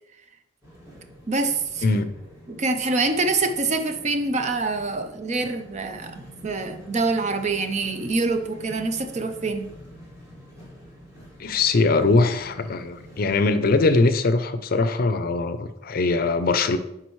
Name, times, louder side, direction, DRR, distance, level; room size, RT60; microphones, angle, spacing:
sound 1, 0.6-13.3, equal, 15° right, 1.6 m, -46 dB
voice 1, 1.3-1.8 2.5-9.7, right 3 dB, 40° right, 8 dB, 0.5 m, -25 dB
voice 2, 1.8-2.1 11.4-16.8, left 3 dB, 50° left, 10 dB, 0.5 m, -21 dB
10.5 x 3.9 x 3.1 m, 0.87 s
head